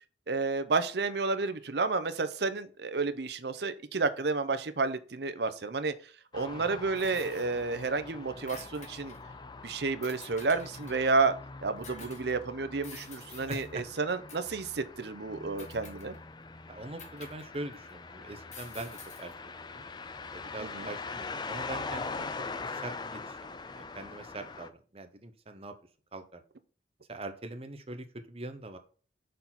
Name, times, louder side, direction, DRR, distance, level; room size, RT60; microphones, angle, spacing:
voice 1, 0.3-5.9 6.3-9.1 9.6-11.3 11.6-16.2 20.6-20.9, right 4 dB, 60° right, 11 dB, 0.7 m, -31 dB
sound 1, 6.3-24.7, left 4 dB, 25° left, 0.4 m, -43 dB
sound 2, 7.0-7.9 8.2-9.3 10.0-11.1 11.8-12.3 12.8-13.7 14.3-14.7 15.6-16.3 17.0-18.0 18.5-19.4, left 4 dB, 40° left, 1.6 m, -51 dB
voice 2, 13.3-13.8 16.7-19.8 20.3-22.3 22.6-23.4 23.7-25.7 26.1-26.4 27.1-28.8, right 2 dB, 30° right, 8 dB, 0.8 m, -42 dB
6.6 x 4.1 x 5.8 m, 0.39 s
head